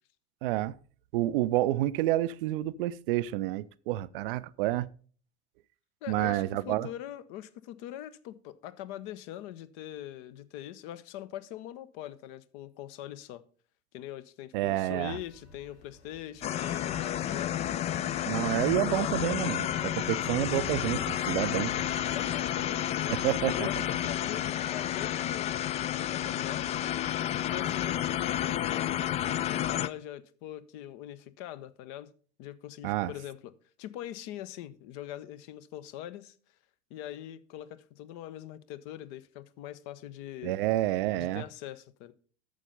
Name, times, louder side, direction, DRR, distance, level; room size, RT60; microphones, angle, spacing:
voice 1, 0.4-0.8 1.1-4.9 6.1-6.9 14.5-15.2 18.2-21.7 23.1-23.7 32.8-33.1 40.4-41.4, right 15 dB, 55° right, 0.5 m, -29 dB
voice 2, 6.0-13.4 13.9-17.7 18.9-19.1 20.5-20.6 22.1-23.1 23.4-25.7 26.0-26.9 27.5-29.1 29.5-32.1 32.4-33.5 33.8-36.3 36.9-40.6 41.2-42.1, left 12 dB, 50° left, 0.8 m, -42 dB
sound 1, 15.1-25.0, left 3 dB, 85° left, 1.9 m, -48 dB
sound 2, 16.4-29.9, left 11 dB, 20° left, 0.3 m, -31 dB
8.5 x 6.5 x 5.3 m
figure-of-eight pair, 75°, 33 cm